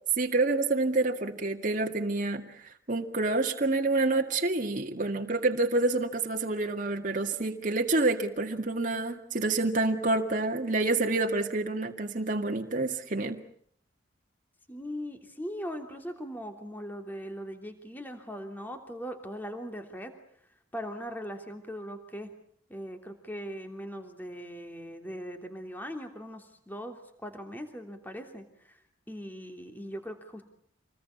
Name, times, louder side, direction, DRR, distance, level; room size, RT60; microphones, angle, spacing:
voice 1, 0.2-2.5 2.9-13.4, right 2 dB, 45° right, 3 dB, 2.0 m, -28 dB
voice 2, 14.7-20.1 20.7-22.3 22.7-28.8 29.1-30.4, equal, 10° left, 5 dB, 3.2 m, -40 dB
27.0 x 21.0 x 8.4 m, 0.62 s
head